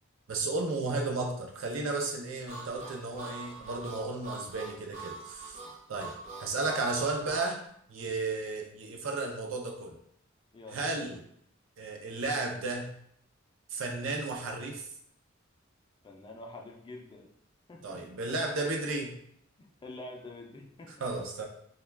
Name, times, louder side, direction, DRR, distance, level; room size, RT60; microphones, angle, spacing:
voice 1, 0.3-5.6 5.9-6.1 6.4-7.6 7.9-9.9 10.7-11.2 11.8-12.9 13.7-14.9 17.8-19.2 21.0-21.4, right 3 dB, 85° right, 2 dB, 0.5 m, -33 dB
Harmonica, 2.5-7.5, right 4 dB, 40° right, 0.6 m, -44 dB
voice 2, 10.5-10.8 16.0-17.3 17.7-18.1 19.6-21.1, left 2 dB, 25° left, 1 dB, 0.3 m, -46 dB
2.2 x 2.2 x 3.2 m, 0.69 s
head